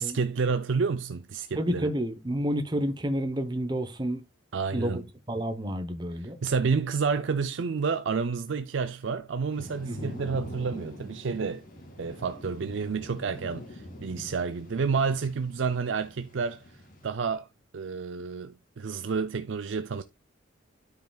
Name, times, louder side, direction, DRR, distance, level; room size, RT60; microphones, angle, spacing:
voice 1, 0.0-1.9 4.5-5.1 6.2-11.6 12.0-16.7 17.0-17.5 17.7-20.0, right 5 dB, 70° right, 0.5 m, -30 dB
voice 2, 1.6-4.2 4.7-5.0 5.3-6.4 9.9-10.2, equal, 20° right, 0.9 m, -30 dB
Thunder / Rain, 9.5-17.1, equal, 40° left, 2.5 m, -44 dB
12.5 x 4.8 x 2.3 m
head